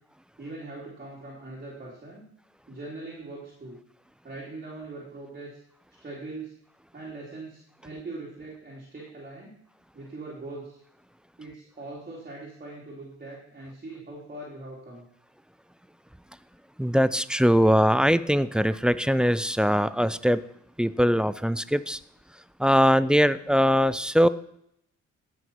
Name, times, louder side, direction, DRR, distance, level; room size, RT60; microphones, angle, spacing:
voice 1, 0.4-2.2 2.7-3.8 4.2-5.6 6.0-6.5 6.9-9.5 9.9-10.8 11.4-15.0, right 2 dB, 30° right, -5 dB, 3.3 m, -41 dB
voice 2, 16.8-20.4 20.8-22.0 22.6-24.3, equal, 5° right, 15 dB, 0.4 m, -21 dB
14.0 x 6.1 x 5.7 m, 0.72 s
cardioid pair, 105°, 29 cm